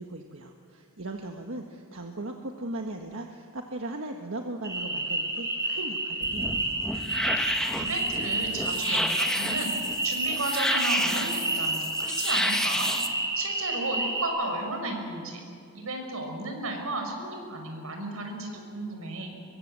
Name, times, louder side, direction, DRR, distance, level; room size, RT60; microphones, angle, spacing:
voice 1, 0.0-6.6, right 2 dB, 70° right, 3 dB, 1.5 m, -38 dB
sound 1, 4.6-14.2, right 2 dB, 15° right, 5.0 m, -30 dB
sound 2, 6.2-13.1, left 1 dB, 5° left, 1.3 m, -30 dB
voice 2, 7.4-9.7 10.0-12.9 13.4-15.4 15.7-19.4, right 2 dB, 90° right, 3 dB, 5.5 m, -34 dB
24.5 x 23.0 x 7.7 m, 2.4 s
head